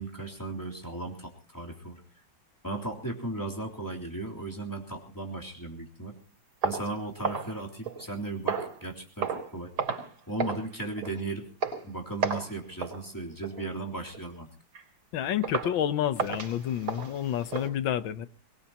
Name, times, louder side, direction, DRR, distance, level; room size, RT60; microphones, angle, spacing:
voice 1, 0.0-2.0 2.6-6.2 6.6-9.7 10.3-11.5 11.8-14.5, right 2 dB, 10° left, 0 dB, 3.3 m, -36 dB
sound 1, 6.6-8.1 8.5-8.8 9.2-9.5 9.8-10.1 10.4-10.6 11.0-11.2 11.6-11.8 12.2-12.5 12.8-13.0 13.4-13.7 14.1-14.2 14.7-14.8 15.4-15.8 16.2-17.7, right 5 dB, 90° right, 4.9 m, -32 dB
voice 2, 15.1-18.3, left 10 dB, 70° left, 12 dB, 1.7 m, -29 dB
22.5 x 20.5 x 3.0 m, 0.36 s
omnidirectional pair, 2.3 m